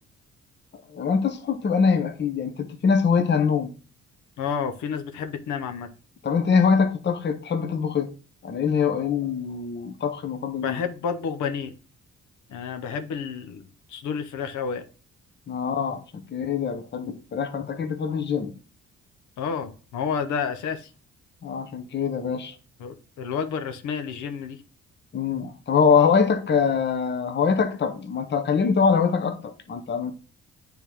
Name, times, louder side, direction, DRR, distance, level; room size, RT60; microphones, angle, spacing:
voice 1, 0.9-3.7 6.2-8.1 8.4-10.8 15.5-16.0 16.3-18.5 21.4-22.5 25.1-30.1, left 6 dB, 35° left, 0.8 m, -23 dB
voice 2, 4.4-5.9 10.6-11.7 12.5-13.6 13.9-14.8 19.4-20.9 22.8-24.6, left 6 dB, 75° left, 0.8 m, -30 dB
9.1 x 3.6 x 3.0 m
cardioid pair, 90°, 30 cm